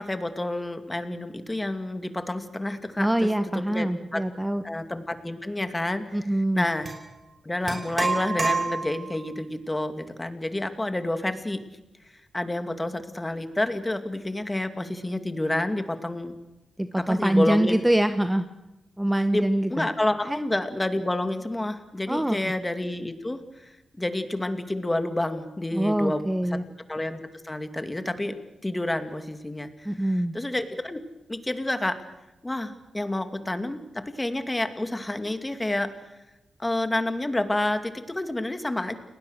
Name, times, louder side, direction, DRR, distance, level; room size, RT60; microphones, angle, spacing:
voice 1, 0.0-3.3 3.7-4.2 4.6-6.0 6.5-6.9 7.4-11.6 12.3-16.3 17.0-17.8 19.3-26.2 26.5-26.6 26.9-28.4 28.6-31.0 31.3-32.0 32.4-35.9 36.6-38.9, left 1 dB, 20° left, 8 dB, 2.4 m, -29 dB
voice 2, 3.0-4.6 6.1-6.6 16.8-18.5 19.0-19.9 20.3-20.4 22.1-22.4 25.7-26.6 29.8-30.3, right 1 dB, 10° right, 9 dB, 1.1 m, -24 dB
sound 1, 6.8-7.0 7.7-9.1, right 3 dB, 40° right, 5.4 m, -28 dB
29.5 x 19.5 x 6.6 m, 1.0 s
cardioid pair, 70°, 0 cm